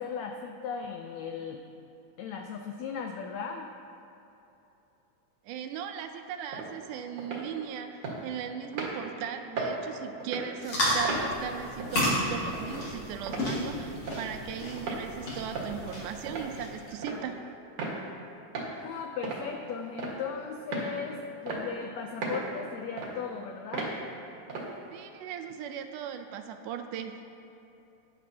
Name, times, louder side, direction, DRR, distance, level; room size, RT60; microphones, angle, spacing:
voice 1, 0.0-1.6 2.2-3.7 18.6-24.0, left 6 dB, 90° left, 3 dB, 1.5 m, -37 dB
voice 2, 5.4-17.4 24.9-27.2, right 8 dB, 80° right, 7 dB, 2.0 m, -38 dB
sound 1, 6.5-6.7 7.2-7.4 8.0-8.2 8.7-8.9 9.6-9.7 10.2-10.5 11.0-11.2 11.8-12.0 12.5-12.6 13.3-13.5 14.1-14.2 14.8-15.0 15.5-15.8 16.3-16.5 17.0-17.2 17.8-18.0 18.5-18.7 19.2-19.4 20.0-20.2 20.7-20.9 21.5-21.6 22.2-22.5 23.0-23.1 23.7-23.9 24.5-24.7, right 3 dB, 55° right, 2.3 m, -34 dB
sound 2, 10.6-16.9, left 1 dB, 45° left, 2.9 m, -32 dB
14.5 x 10.0 x 2.8 m, 2.9 s
omnidirectional pair, 3.8 m